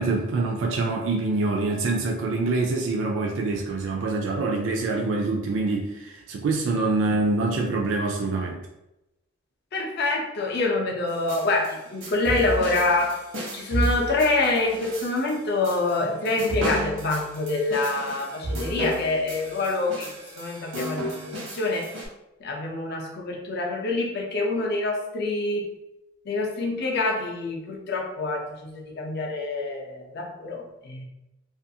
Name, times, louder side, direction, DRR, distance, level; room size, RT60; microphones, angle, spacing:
voice 1, 0.0-8.6, right 3 dB, 70° right, 0 dB, 0.3 m, -25 dB
voice 2, 9.7-13.2 13.5-20.1 20.3-21.9 22.4-25.7 26.3-31.0, left 2 dB, 55° left, 0 dB, 0.5 m, -26 dB
sound 1, 11.1-22.1, right 1 dB, 85° right, 0.9 m, -32 dB
2.4 x 2.3 x 2.6 m, 0.93 s
head